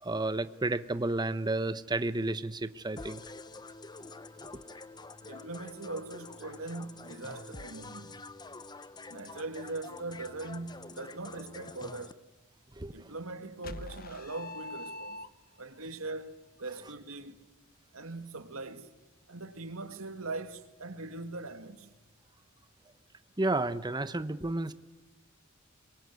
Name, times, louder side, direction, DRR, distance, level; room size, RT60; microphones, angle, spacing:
voice 1, 0.0-3.2 12.8-12.9 23.4-24.7, right 2 dB, 20° right, 1.0 m, -31 dB
sound 1, 3.0-12.1, left 3 dB, 20° left, 0.8 m, -47 dB
voice 2, 5.2-8.2 9.1-12.2 12.9-15.2 15.6-17.4 17.9-18.9 19.3-21.9, right 2 dB, 85° right, 2.2 m, -41 dB
sound 2, 13.6-15.7, left 2 dB, 45° left, 1.2 m, -43 dB
26.0 x 22.5 x 9.5 m
head